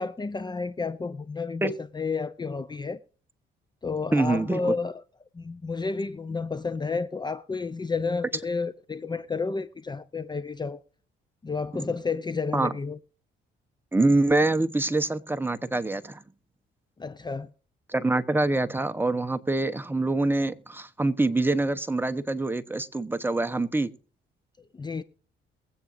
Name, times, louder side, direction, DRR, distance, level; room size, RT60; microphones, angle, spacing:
voice 1, 0.0-3.0 3.8-5.0 5.3-10.8 11.4-13.0 17.0-17.5 24.7-25.0, left 4 dB, 20° left, 0.6 m, -31 dB
voice 2, 4.1-4.7 11.7-11.9 12.5-12.7 13.9-16.2 17.9-23.9, right 2 dB, 10° right, 1.0 m, -25 dB
22.0 x 8.5 x 2.6 m
cardioid pair, 90°, 20 cm